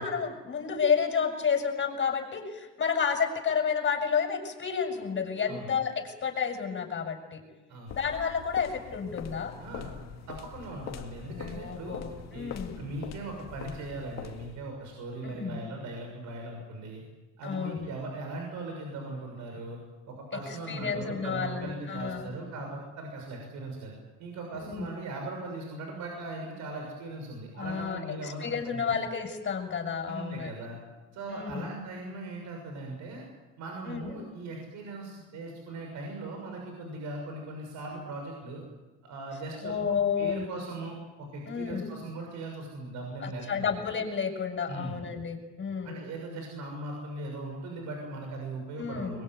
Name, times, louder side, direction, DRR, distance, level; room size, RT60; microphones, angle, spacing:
voice 1, 0.0-7.4 7.9-9.5 11.3-12.8 15.2-15.6 17.4-17.9 20.7-22.3 24.5-24.9 27.6-30.5 31.3-31.6 33.8-34.1 39.6-40.5 41.5-41.9 43.2-46.0 48.8-49.2, left 6 dB, 35° left, 4 dB, 7.2 m, -31 dB
sound 1, 7.9-14.7, left 8 dB, 60° left, 2.2 m, -43 dB
voice 2, 9.6-9.9 10.3-12.0 12.3-17.0 17.4-19.8 20.1-23.9 24.2-28.9 30.1-30.8 31.1-33.3 33.6-38.6 39.0-39.7 40.2-43.7 44.7-45.0 45.8-49.2, right 2 dB, 70° right, 2 dB, 6.8 m, -39 dB
23.0 x 22.5 x 9.5 m, 1.1 s
supercardioid pair, 95°, 31 cm